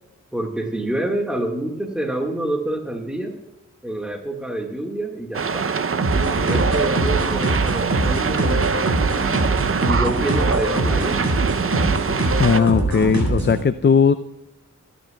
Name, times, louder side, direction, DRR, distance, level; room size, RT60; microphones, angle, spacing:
voice 1, 0.3-3.3 3.8-5.7 6.3-8.8 9.8-11.2, right 1 dB, 5° right, 1 dB, 1.7 m, -27 dB
sound 1, 5.3-12.6, right 5 dB, 45° right, 0.6 m, -24 dB
sound 2, 6.0-13.6, right 2 dB, 60° right, 3.8 m, -23 dB
voice 2, 12.4-14.1, left 6 dB, 35° left, 11 dB, 0.5 m, -17 dB
25.5 x 10.0 x 2.3 m, 0.99 s
wide cardioid pair, 70°, 31 cm